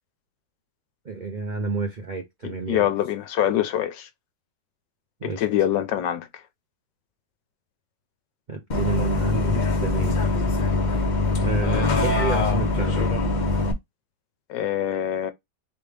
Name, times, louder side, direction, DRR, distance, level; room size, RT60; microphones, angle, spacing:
voice 1, 1.0-2.9 5.2-5.4 8.5-10.2 11.4-13.1, right 3 dB, 75° right, 0.4 m, -29 dB
voice 2, 2.4-4.1 5.2-6.3 14.5-15.3, left 11 dB, 75° left, 1.2 m, -24 dB
Bus, 8.7-13.7, left 3 dB, 45° left, 0.6 m, -23 dB
4.1 x 3.5 x 3.3 m
omnidirectional pair, 2.1 m